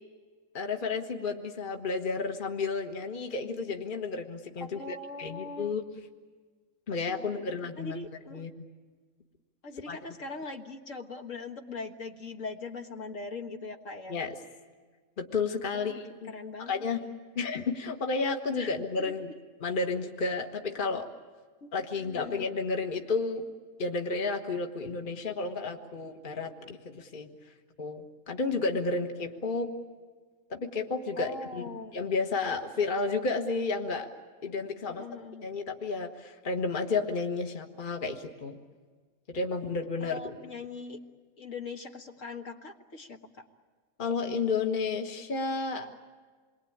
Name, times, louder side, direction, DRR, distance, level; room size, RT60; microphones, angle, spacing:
voice 1, 0.5-5.8 6.9-8.7 9.9-10.0 14.1-14.3 15.2-16.3 16.6-17.0 17.3-21.1 21.7-23.4 23.8-27.3 27.8-29.7 30.5-31.6 31.9-34.1 34.4-35.0 35.4-38.6 39.3-40.4 44.0-45.9, left 4 dB, 35° left, 4 dB, 1.6 m, -32 dB
voice 2, 4.7-5.8 7.2-8.5 9.6-14.2 15.7-16.0 16.3-16.8 18.6-18.7 19.0-19.1 21.6-22.5 31.2-31.9 34.9-35.5 40.0-41.0 41.4-43.3, left 3 dB, 60° left, 3 dB, 2.0 m, -41 dB
28.0 x 22.5 x 8.8 m, 1.5 s
omnidirectional pair, 1.5 m